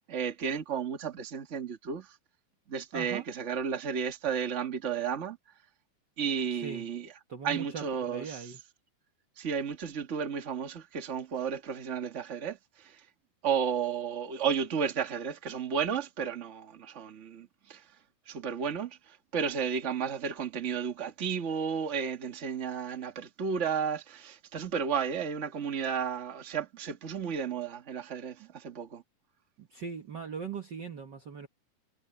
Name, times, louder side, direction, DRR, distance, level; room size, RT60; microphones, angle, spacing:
voice 1, 0.0-2.2 2.7-5.4 6.2-7.1 7.4-8.5 9.4-13.0 13.4-17.8 18.3-29.0, right 7 dB, 45° right, 0.9 m, -33 dB
voice 2, 2.9-3.3 6.5-6.8 7.3-8.6 28.4-28.5 29.6-31.5, right 6 dB, 75° right, 1.0 m, -40 dB
omnidirectional pair, 4.2 m